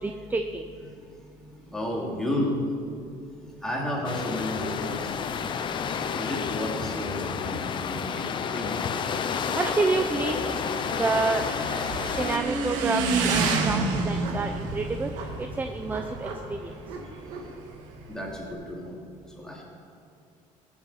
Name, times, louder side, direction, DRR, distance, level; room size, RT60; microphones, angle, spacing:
voice 1, 0.0-0.7 9.6-10.4 11.0-11.5 12.1-15.1 15.4-16.7, right 3 dB, 15° right, 7 dB, 0.5 m, -28 dB
voice 2, 1.7-2.6 3.6-5.1 6.0-8.2 8.5-8.7 18.1-18.9 19.4-19.6, left 1 dB, 5° left, -3 dB, 2.6 m, -32 dB
sound 1, 4.0-12.4, left 6 dB, 40° left, 0.7 m, -30 dB
Motorcycle / Engine, 9.3-18.5, right 3 dB, 85° right, 1.6 m, -30 dB
17.0 x 7.2 x 5.6 m, 2.5 s
cardioid pair, 130°, 13 cm